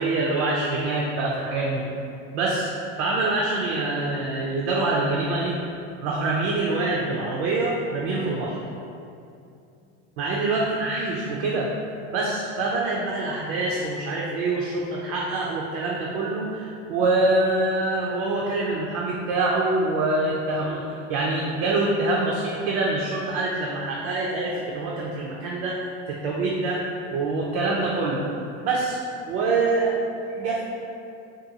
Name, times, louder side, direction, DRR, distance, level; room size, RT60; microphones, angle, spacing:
voice 1, 0.0-1.8 2.3-2.7 3.0-5.6 6.0-8.6 10.2-11.7 12.1-20.8 21.1-26.8 27.1-28.2 28.6-29.0 29.3-30.0 30.3-30.6, right 2 dB, 80° right, -3 dB, 0.5 m, -25 dB
2.6 x 2.3 x 2.6 m, 2.5 s
supercardioid pair, 120°, 32 cm